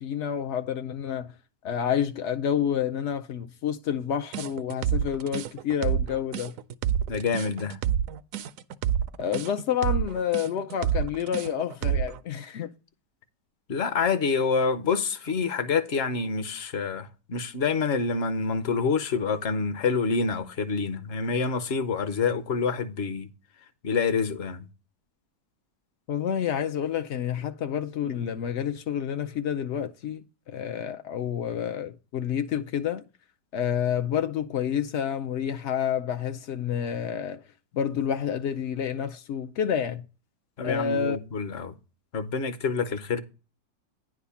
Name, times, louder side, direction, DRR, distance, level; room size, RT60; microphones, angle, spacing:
voice 1, 0.0-1.3 1.6-6.5 9.2-12.7 26.1-33.0 33.5-37.4 37.7-40.0 40.6-41.2, left 8 dB, 85° left, 0.6 m, -29 dB
sound 1, 4.3-12.2, right 9 dB, 75° right, 0.7 m, -28 dB
voice 2, 7.1-7.8 13.7-23.3 23.8-24.7 40.6-41.8 42.1-43.2, left 5 dB, 50° left, 0.8 m, -27 dB
10.0 x 3.6 x 6.9 m
omnidirectional pair, 1.9 m